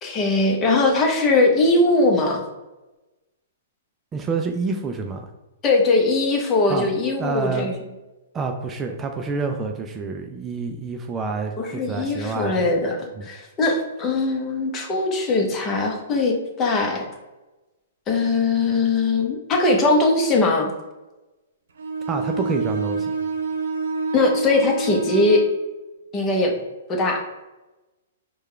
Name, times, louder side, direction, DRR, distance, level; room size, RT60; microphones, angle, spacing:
voice 1, 0.0-2.4 5.6-7.7 11.6-17.1 18.1-20.7 24.1-25.4 26.1-26.5 26.9-27.2, left 2 dB, 25° left, 1 dB, 0.9 m, -20 dB
voice 2, 4.1-5.3 6.7-6.9 7.2-7.7 8.3-12.7 13.2-13.3 22.1-23.1, right 4 dB, 20° right, 4 dB, 0.4 m, -28 dB
Bowed string instrument, 21.8-25.6, right 3 dB, 70° right, 0.6 m, -27 dB
4.6 x 2.3 x 3.2 m, 1.1 s
hypercardioid pair, 120°, 0 cm